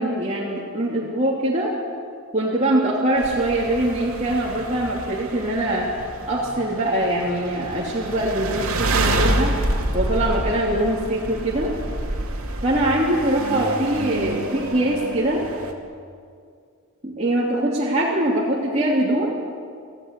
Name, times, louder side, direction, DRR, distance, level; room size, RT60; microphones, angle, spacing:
voice 1, 0.0-1.7 2.3-5.9 6.3-9.5 9.9-11.7 12.6-15.4 17.0-19.3, right 1 dB, 30° right, -6 dB, 3.1 m, -22 dB
sound 1, 3.2-15.7, right 1 dB, 90° right, 2.5 m, -28 dB
26.5 x 16.5 x 8.4 m, 2.3 s
head